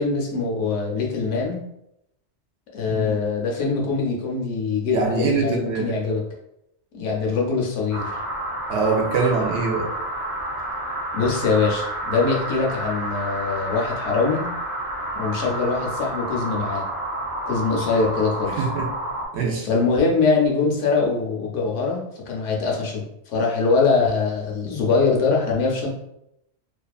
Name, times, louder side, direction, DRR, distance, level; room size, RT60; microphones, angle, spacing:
voice 1, 0.0-1.6 2.7-6.2 6.9-8.2 11.1-14.4 15.2-16.8 17.5-18.6 19.6-25.9, left 4 dB, 85° left, -1 dB, 1.0 m, -23 dB
voice 2, 4.9-6.0 8.7-9.9 18.6-18.9 19.3-19.7, right 4 dB, 75° right, 0 dB, 0.9 m, -23 dB
sound 1, 7.9-19.3, right 1 dB, 20° left, 0.5 m, -29 dB
2.7 x 2.3 x 2.3 m, 0.82 s
omnidirectional pair, 1.2 m